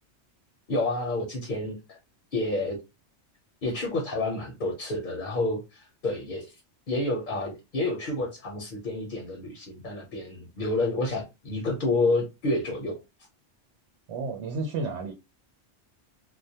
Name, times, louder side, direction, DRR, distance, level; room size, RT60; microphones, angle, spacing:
voice 1, 0.7-2.0 2.3-2.8 3.6-6.5 6.9-13.0, left 2 dB, 55° left, 0.7 m, -29 dB
voice 2, 14.1-15.1, right 3 dB, 70° right, 0.9 m, -31 dB
2.2 x 2.1 x 2.7 m
omnidirectional pair, 1.2 m